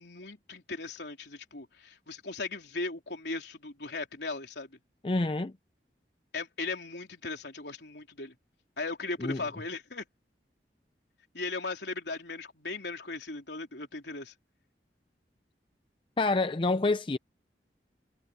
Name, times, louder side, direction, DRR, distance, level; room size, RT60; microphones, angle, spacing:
voice 1, 0.0-4.8 6.3-8.3 8.8-10.1 11.3-14.3, left 3 dB, 75° left, 3.6 m, -38 dB
voice 2, 5.0-5.5 9.2-9.4 16.2-17.2, left 3 dB, 30° left, 0.5 m, -27 dB
head